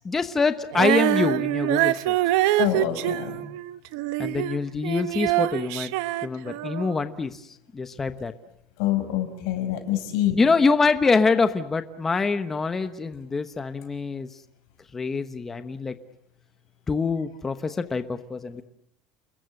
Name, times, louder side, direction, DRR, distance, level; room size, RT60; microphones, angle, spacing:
voice 1, 0.0-2.2 4.2-5.9 6.2-7.4 7.7-8.3 10.4-14.3 14.9-15.9 16.9-18.6, left 4 dB, 15° left, 9 dB, 1.0 m, -25 dB
Female singing, 0.7-7.0, right 16 dB, 90° right, 0.9 m, -25 dB
voice 2, 2.6-3.4 8.8-10.4, left 12 dB, 90° left, 8 dB, 5.6 m, -26 dB
30.0 x 21.5 x 7.7 m, 0.73 s
cardioid pair, 165°, 2 cm